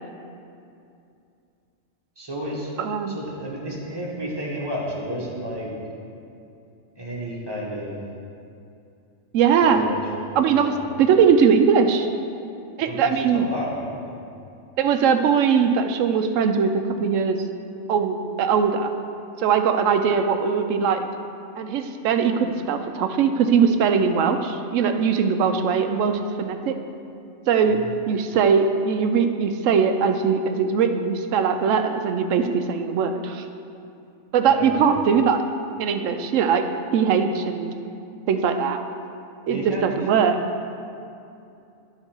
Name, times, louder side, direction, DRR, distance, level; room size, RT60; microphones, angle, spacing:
voice 1, 2.2-2.7 3.1-5.7 7.0-7.9 9.6-11.0 12.8-14.2 27.7-27.9 34.5-34.9 39.5-40.1, equal, 20° right, -5 dB, 1.3 m, -32 dB
voice 2, 2.8-3.2 9.3-9.8 10.4-12.1 12.8-13.5 14.8-16.7 17.0-17.4 17.9-18.9 19.4-21.0 21.6-26.7 27.5-27.8 28.1-33.5 34.3-35.4 35.8-36.7 36.9-37.7 38.3-38.8 39.5-40.4, right 6 dB, 85° right, 6 dB, 0.9 m, -20 dB
11.0 x 3.9 x 4.4 m, 2.6 s
omnidirectional pair, 1.3 m